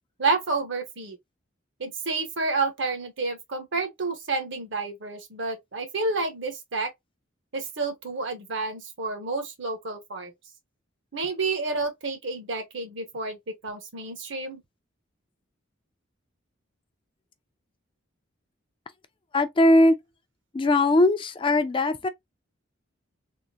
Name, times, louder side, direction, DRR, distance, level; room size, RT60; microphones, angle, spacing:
voice 1, 0.2-1.2 1.8-6.9 7.5-10.3 11.1-14.6, right 3 dB, 65° right, 1.0 m, -30 dB
voice 2, 19.3-20.0 20.5-22.1, left 1 dB, 25° left, 0.4 m, -20 dB
3.6 x 2.1 x 2.8 m
head